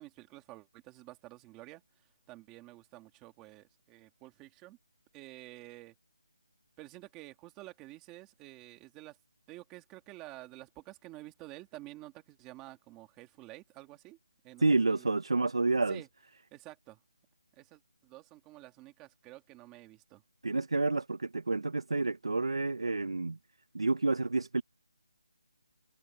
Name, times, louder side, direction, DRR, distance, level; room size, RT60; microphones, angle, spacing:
voice 1, 0.0-4.8 5.1-6.0 6.8-9.2 9.5-14.2 14.4-15.1 15.9-16.1 16.5-17.0 17.6-20.2, right 18 dB, 5° right, 2.5 m, -50 dB
voice 2, 14.6-16.0 20.4-23.4 23.7-24.6, right 3 dB, 85° right, 1.7 m, -29 dB
hypercardioid pair, 180°, 3 cm